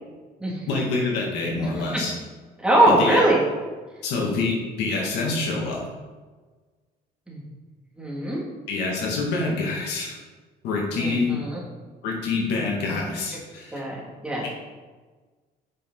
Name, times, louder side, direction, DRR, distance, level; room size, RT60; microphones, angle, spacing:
voice 1, 0.7-2.1 2.9-3.2 4.0-5.8 8.7-10.2 10.6-11.4 12.0-13.8, left 3 dB, 85° left, -2 dB, 2.4 m, -26 dB
voice 2, 2.6-3.4 7.3-7.4 8.0-8.4 10.9-11.6 13.7-14.5, right 1 dB, 5° right, -5 dB, 2.6 m, -22 dB
8.2 x 6.6 x 4.1 m, 1.3 s
cardioid pair, 110°, 17 cm